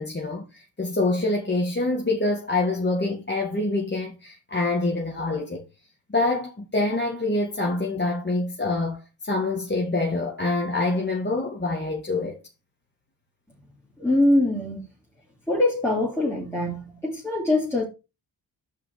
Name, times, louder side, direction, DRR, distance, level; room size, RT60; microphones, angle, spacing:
voice 1, 0.0-5.6 6.1-12.4, left 2 dB, 25° left, 1.8 m, -26 dB
voice 2, 14.0-14.8 15.5-17.8, left 1 dB, 5° left, 2.8 m, -23 dB
5.4 x 5.3 x 6.5 m
cardioid pair, 75°, 46 cm